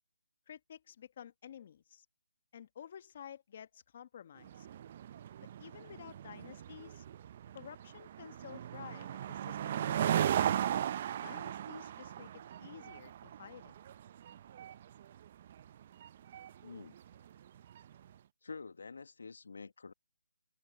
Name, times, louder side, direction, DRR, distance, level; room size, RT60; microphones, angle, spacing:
voice 1, 0.5-2.0 2.5-4.7 5.4-7.0 7.5-10.4 11.2-13.7, left 9 dB, 35° left, 1.2 m, -52 dB
sound 1, 4.4-18.0, right 10 dB, 30° right, 0.6 m, -37 dB
voice 2, 16.6-16.9 18.4-19.9, left 4 dB, 70° left, 1.6 m, -47 dB
open air
hypercardioid pair, 165°, 0 cm